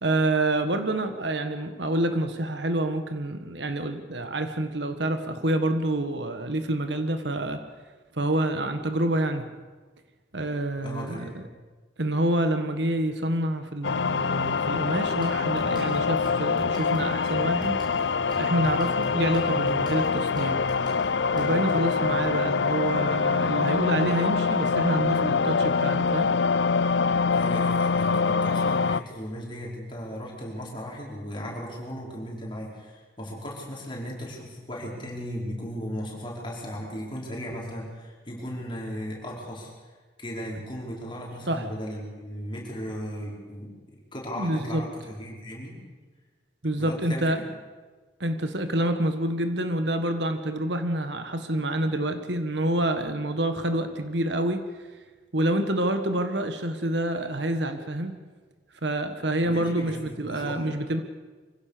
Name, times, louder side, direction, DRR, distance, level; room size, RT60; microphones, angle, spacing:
voice 1, 0.0-7.6 8.1-9.5 10.3-11.4 12.0-17.8 18.4-20.7 21.3-26.3 41.5-41.7 44.3-44.8 46.6-47.4 48.2-54.6 55.3-58.2 58.8-61.0, right 1 dB, 70° right, 8 dB, 1.5 m, -27 dB
voice 2, 10.8-11.4 27.3-39.7 40.2-43.7 44.1-45.8 46.7-47.4 59.4-60.7, equal, 25° left, -3 dB, 5.2 m, -36 dB
sound 1, 13.8-29.0, left 5 dB, 70° left, 0.5 m, -25 dB
sound 2, 15.2-21.8, equal, 25° right, 5.4 m, -46 dB
24.5 x 16.5 x 6.8 m, 1.4 s
head